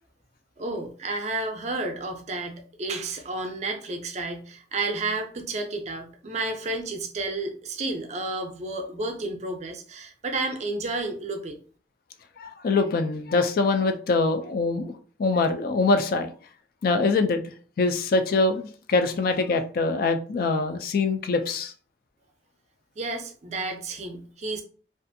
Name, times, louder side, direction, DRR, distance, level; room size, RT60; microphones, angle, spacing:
voice 1, 0.6-11.6 23.0-24.6, right 2 dB, 40° right, 5 dB, 0.4 m, -31 dB
voice 2, 12.4-14.9 15.2-16.3 16.8-21.7, left 3 dB, 55° left, 7 dB, 0.3 m, -24 dB
2.5 x 2.4 x 2.5 m, 0.43 s
head